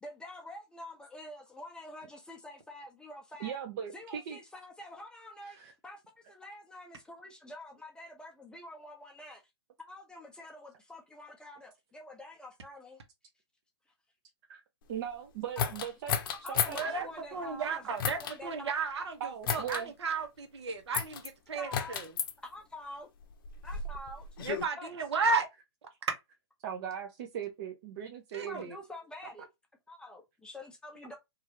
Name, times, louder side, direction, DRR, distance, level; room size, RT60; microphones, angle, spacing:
voice 1, 0.0-3.6 3.9-5.6 5.8-9.4 9.8-13.0 15.6-15.7 16.4-17.8 18.2-18.7 21.5-22.0 22.4-23.1 23.6-24.3 24.8-24.9 28.4-29.5 29.9-31.2, left 1 dB, 5° left, 0.5 m, -47 dB
voice 2, 3.4-4.4 5.4-5.7 14.5-14.6 14.9-16.1 16.5-16.8 19.2-19.9 26.6-28.8, right 9 dB, 45° right, 0.5 m, -39 dB
sound 1, 15.6-16.9 18.0-18.4 19.4-19.8 20.9-21.3 21.7-22.3 23.2-24.6, left 7 dB, 50° left, 0.6 m, -33 dB
voice 3, 16.7-22.1 24.4-25.5 28.3-28.6, right 4 dB, 70° right, 1.0 m, -34 dB
2.9 x 2.4 x 2.8 m
hypercardioid pair, 135°, 15 cm